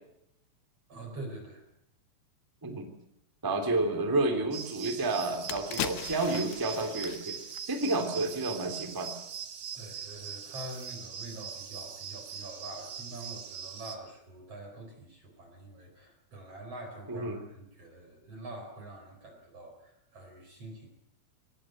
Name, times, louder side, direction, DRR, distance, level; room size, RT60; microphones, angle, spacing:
voice 1, 0.9-1.6 9.7-20.9, right 2 dB, 30° right, 3 dB, 4.9 m, -45 dB
voice 2, 3.4-7.4 7.6-9.1 17.1-17.4, right 2 dB, 5° right, 6 dB, 1.7 m, -30 dB
sound 1, 4.5-14.0, right 8 dB, 60° right, 3.8 m, -42 dB
sound 2, 4.8-4.9 5.2-8.5 8.8-9.0, left 13 dB, 75° left, 2.5 m, -40 dB
23.5 x 19.0 x 7.9 m, 0.78 s
omnidirectional pair, 5.7 m